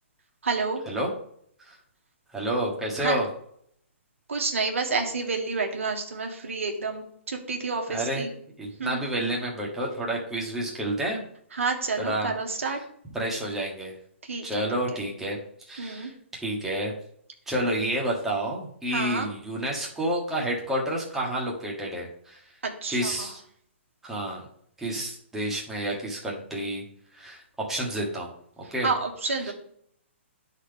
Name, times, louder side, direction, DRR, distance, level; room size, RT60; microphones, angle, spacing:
voice 1, 0.4-0.8 3.0-3.2 4.3-8.3 8.8-9.0 11.6-12.8 14.3-14.6 15.8-16.1 18.9-19.3 22.8-23.3 28.8-29.5, right 4 dB, 85° right, 2 dB, 1.5 m, -29 dB
voice 2, 2.3-3.3 7.9-8.2 8.6-11.2 12.0-12.3 12.6-12.8 13.1-13.9 14.4-15.4 15.7-16.1 16.4-16.9 17.5-22.4 22.9-23.4 24.0-24.4 24.8-26.8 27.1-28.3 28.7-28.9 29.4-29.5, right 1 dB, 5° right, -4 dB, 1.5 m, -29 dB
11.0 x 4.0 x 3.4 m, 0.66 s
hypercardioid pair, 150°, 7 cm